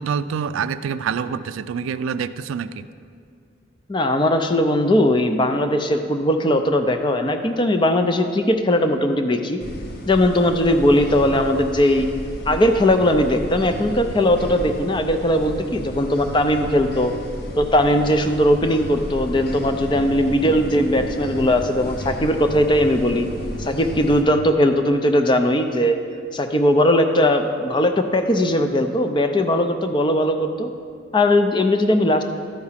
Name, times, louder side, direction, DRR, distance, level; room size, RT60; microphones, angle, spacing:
voice 1, 0.0-2.9, right 6 dB, 75° right, 13 dB, 0.3 m, -26 dB
voice 2, 3.9-9.6 10.1-12.1 12.5-17.1 17.5-23.3 23.6-26.0 26.3-30.7 31.1-32.2, left 1 dB, 20° left, 7 dB, 0.4 m, -19 dB
sound 1, 9.6-24.2, equal, 50° left, 0.8 m, -33 dB
11.5 x 4.8 x 5.7 m, 2.3 s
head